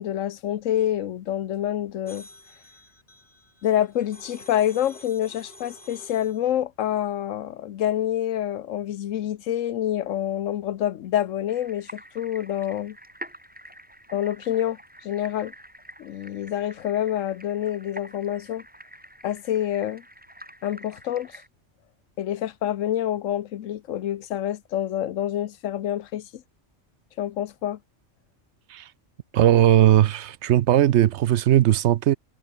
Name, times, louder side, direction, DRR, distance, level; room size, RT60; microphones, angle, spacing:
voice 1, 0.0-2.3 3.6-13.0 14.1-15.5 16.0-18.6 19.2-20.0 20.6-21.4 22.2-26.4 27.2-27.8, left 11 dB, 85° left, 1.1 m, -27 dB
sound 1, 2.1-6.5, left 1 dB, 40° left, 7.6 m, -48 dB
sound 2, 11.5-21.5, right 1 dB, 5° right, 1.9 m, -46 dB
voice 2, 29.3-32.2, right 12 dB, 70° right, 0.8 m, -18 dB
omnidirectional pair, 1.3 m